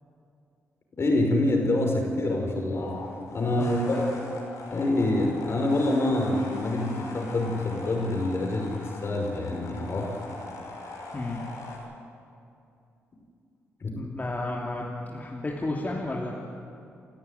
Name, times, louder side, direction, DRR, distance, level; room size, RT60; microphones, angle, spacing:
voice 1, 1.0-3.0 3.3-4.0 4.7-10.1 13.8-14.0, left 1 dB, 50° left, 2 dB, 5.8 m, -26 dB
sound 1, 2.7-11.8, left 2 dB, 80° left, 5.9 m, -41 dB
voice 2, 3.6-4.3 11.1-11.4 13.9-16.4, left 2 dB, 30° left, -2 dB, 3.1 m, -33 dB
29.0 x 13.0 x 9.8 m, 2.6 s
supercardioid pair, 60°, 6 cm